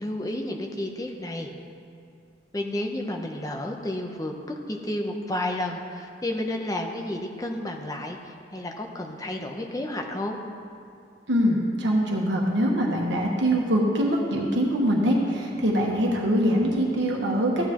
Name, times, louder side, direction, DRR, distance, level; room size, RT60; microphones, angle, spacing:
voice 1, 0.0-1.5 2.5-10.4, left 1 dB, 20° left, 2 dB, 0.8 m, -31 dB
voice 2, 11.3-17.7, equal, 85° right, -1 dB, 1.3 m, -23 dB
14.5 x 9.4 x 3.0 m, 2.5 s
head